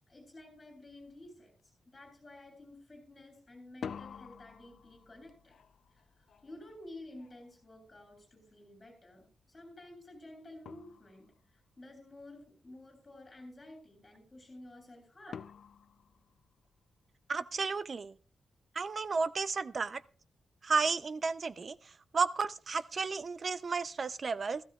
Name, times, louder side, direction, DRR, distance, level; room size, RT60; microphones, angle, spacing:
voice 1, 0.1-1.5 1.9-5.6 5.9-6.0 6.4-11.3 11.8-15.5, left 1 dB, 25° left, 2 dB, 7.7 m, -52 dB
sound 1, 1.1-1.2 1.6-2.1 3.6-8.5 10.1-10.2 10.7-11.6 15.3-17.0, left 7 dB, 65° left, 0.4 m, -49 dB
voice 2, 17.3-18.2 18.7-20.0 20.6-24.6, right 4 dB, 40° right, 15 dB, 0.5 m, -33 dB
16.0 x 14.5 x 2.3 m, 0.39 s
wide cardioid pair, 125°, 0 cm